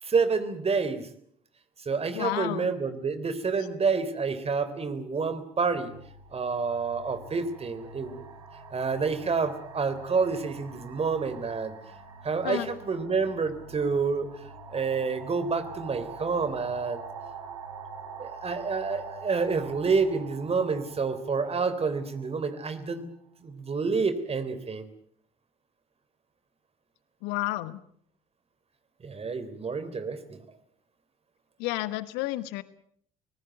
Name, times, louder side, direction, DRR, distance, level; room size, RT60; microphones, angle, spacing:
voice 1, 0.0-1.1 1.8-5.9 6.3-8.3 8.7-11.7 12.2-14.3 14.7-17.0 18.2-23.1 23.4-24.9 29.0-30.4, right 5 dB, 35° right, 11 dB, 3.4 m, -28 dB
voice 2, 2.1-2.7 12.4-12.7 27.2-27.8 31.6-32.6, left 17 dB, 65° left, 16 dB, 1.1 m, -31 dB
sound 1, 5.3-5.5 6.5-23.1, right 7 dB, 85° right, 3.4 m, -46 dB
sound 2, 5.7-22.1, equal, 60° right, 4.9 m, -51 dB
25.0 x 19.5 x 8.0 m, 0.66 s
figure-of-eight pair, 50°, 18 cm